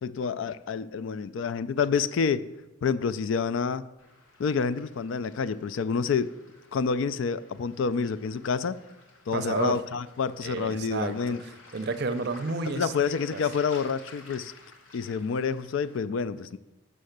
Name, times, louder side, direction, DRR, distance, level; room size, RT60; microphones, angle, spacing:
voice 1, 0.0-2.4 2.8-3.8 4.4-6.3 6.7-8.8 9.3-11.4 12.8-14.5 14.9-16.6, left 5 dB, 70° left, 15 dB, 0.3 m, -28 dB
Waves surf, 4.0-16.0, left 3 dB, 85° left, 1.3 m, -52 dB
voice 2, 9.3-9.8 10.4-12.9 13.3-13.4, right 3 dB, 50° right, 9 dB, 0.5 m, -31 dB
6.3 x 5.7 x 6.5 m, 1.0 s
head